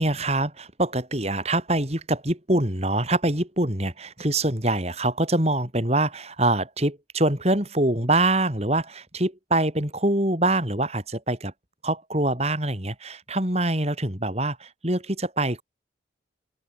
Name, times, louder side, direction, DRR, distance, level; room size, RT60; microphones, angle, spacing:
voice 1, 0.0-11.5 11.8-15.6, right 1 dB, 35° right, 4.1 m, -24 dB
open air
head